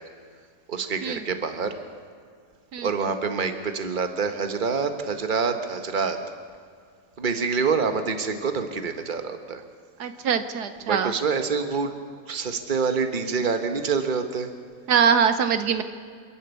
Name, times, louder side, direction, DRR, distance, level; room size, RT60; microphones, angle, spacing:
voice 1, 0.7-1.8 2.8-6.2 7.2-9.6 10.8-11.9 12.3-14.5, right 5 dB, 30° right, 7 dB, 1.4 m, -26 dB
voice 2, 10.0-11.1 14.9-15.8, right 7 dB, 75° right, 10 dB, 1.4 m, -22 dB
27.5 x 11.5 x 8.3 m, 2.1 s
omnidirectional pair, 1.7 m